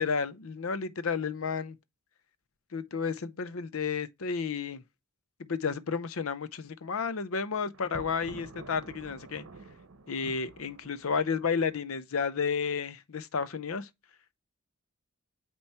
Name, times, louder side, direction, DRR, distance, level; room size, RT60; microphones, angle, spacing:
voice 1, 0.0-1.8 2.7-4.8 5.4-9.5 10.1-13.9, left 5 dB, 75° left, 0.6 m, -32 dB
Thunder, 7.7-11.9, right 3 dB, 70° right, 1.0 m, -49 dB
8.7 x 3.1 x 4.3 m
head